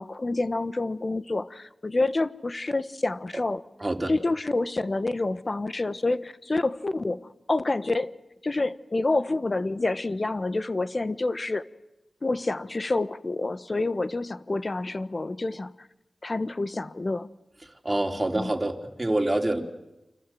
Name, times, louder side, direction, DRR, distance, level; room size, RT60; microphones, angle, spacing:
voice 1, 0.0-3.6 4.1-7.2 7.5-8.1 8.4-11.6 12.2-15.7 16.2-17.3 18.3-18.5, left 2 dB, 45° left, 13 dB, 1.2 m, -28 dB
voice 2, 3.8-4.1 17.8-19.6, right 1 dB, 25° right, 2 dB, 3.7 m, -26 dB
30.0 x 25.5 x 7.8 m, 0.95 s
cardioid pair, 50°, 0 cm